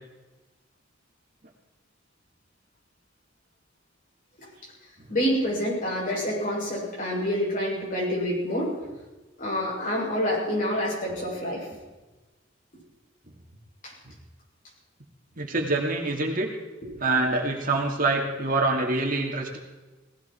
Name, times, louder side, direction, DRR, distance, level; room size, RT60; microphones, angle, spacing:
voice 1, 5.1-8.7 9.4-11.7 13.8-13.9, equal, 45° left, -4 dB, 7.3 m, -27 dB
voice 2, 15.4-16.5 17.0-19.6, right 2 dB, 45° right, 1 dB, 2.5 m, -25 dB
19.0 x 16.0 x 4.6 m, 1.2 s
head